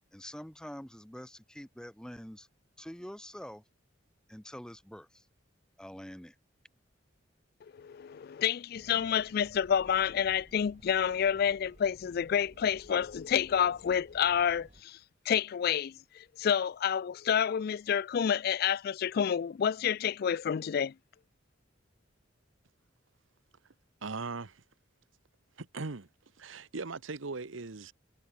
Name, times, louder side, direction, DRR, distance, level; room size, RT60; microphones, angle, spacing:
voice 1, 0.1-2.5 2.8-3.6 4.3-5.3 5.8-6.4, equal, 5° left, 0.7 m, -45 dB
voice 2, 7.8-15.0 15.3-20.9, left 8 dB, 50° left, 0.3 m, -29 dB
sound 1, 8.7-14.8, right 1 dB, 35° right, 2.0 m, -57 dB
voice 3, 24.0-24.6 25.6-26.1 26.4-27.9, right 3 dB, 85° right, 1.1 m, -39 dB
head